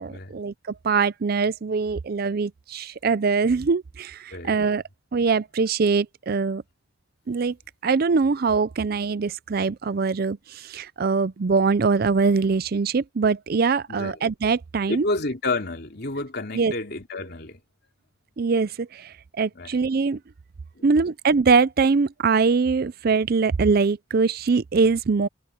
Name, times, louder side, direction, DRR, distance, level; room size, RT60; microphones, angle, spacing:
voice 1, 0.0-4.8 5.1-6.6 7.3-7.6 7.8-15.0 16.5-16.7 18.4-20.2 20.8-25.3, right 4 dB, 50° right, 0.5 m, -23 dB
voice 2, 13.9-14.2 14.9-17.6 19.5-19.7 20.8-20.9, left 2 dB, 55° left, 3.3 m, -30 dB
head